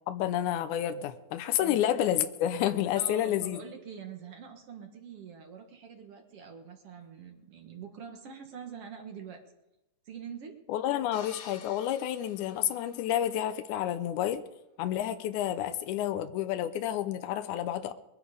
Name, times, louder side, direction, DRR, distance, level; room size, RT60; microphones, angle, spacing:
voice 1, 0.1-3.6 10.7-14.4 14.8-17.9, left 11 dB, 85° left, 10 dB, 2.2 m, -30 dB
voice 2, 3.0-9.4 10.1-10.6, right 7 dB, 55° right, 4 dB, 2.2 m, -45 dB
sound 1, 11.1-13.3, left 5 dB, 55° left, 2.0 m, -51 dB
21.5 x 9.9 x 5.0 m, 0.93 s
omnidirectional pair, 3.5 m